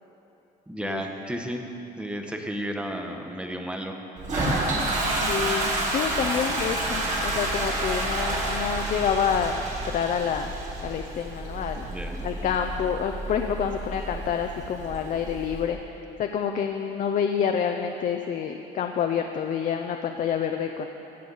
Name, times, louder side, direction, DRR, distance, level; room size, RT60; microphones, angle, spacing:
voice 1, 0.7-1.6 2.0-4.0 11.8-12.5, equal, 5° right, 3 dB, 0.9 m, -33 dB
Toilet flush, 4.2-15.6, right 1 dB, 45° right, 2.5 m, -29 dB
voice 2, 5.0-10.5 10.8-11.9 12.2-20.9, left 7 dB, 50° left, 5 dB, 0.5 m, -28 dB
16.0 x 7.0 x 3.9 m, 3.0 s
cardioid pair, 110°, 17 cm